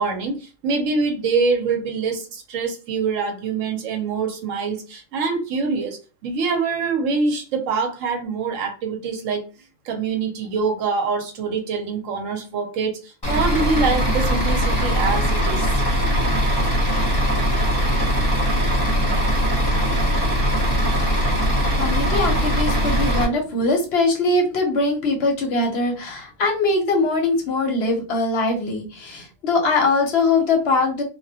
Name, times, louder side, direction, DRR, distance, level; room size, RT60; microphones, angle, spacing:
voice 1, 0.0-9.4 9.8-15.8, right 4 dB, 80° right, 1.0 m, -25 dB
Bus / Idling, 13.2-23.2, equal, 25° left, 0.7 m, -20 dB
voice 2, 21.7-31.0, left 3 dB, 65° left, 0.8 m, -21 dB
2.2 x 2.1 x 2.6 m
omnidirectional pair, 1.3 m